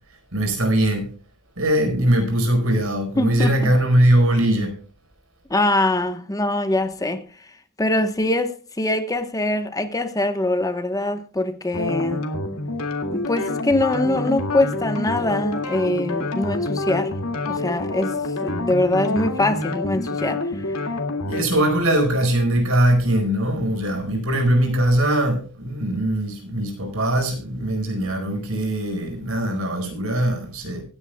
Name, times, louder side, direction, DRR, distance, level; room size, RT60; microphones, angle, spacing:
voice 1, 0.3-1.1 1.6-4.7 21.2-30.8, right 1 dB, 65° right, 4.7 m, -21 dB
voice 2, 3.2-3.7 5.5-7.2 7.8-12.2 13.1-17.1 17.5-20.8, left 1 dB, 15° left, 1.0 m, -23 dB
sound 1, 11.7-21.4, left 2 dB, 75° left, 2.2 m, -27 dB
24.5 x 9.9 x 2.2 m
head